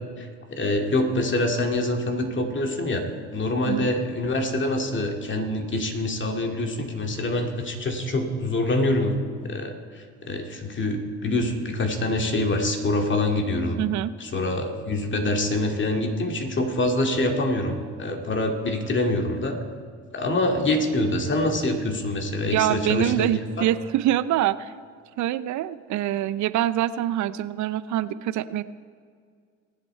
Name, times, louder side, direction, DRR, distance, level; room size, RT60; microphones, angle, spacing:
voice 1, 0.2-3.0 3.3-9.2 9.4-13.8 14.2-19.6 20.1-23.7, left 1 dB, 35° left, 3 dB, 2.2 m, -25 dB
voice 2, 13.8-14.1 22.4-24.7 25.2-28.6, right 12 dB, 55° right, 16 dB, 0.6 m, -25 dB
22.0 x 8.0 x 4.5 m, 2.1 s
supercardioid pair, 75°, 34 cm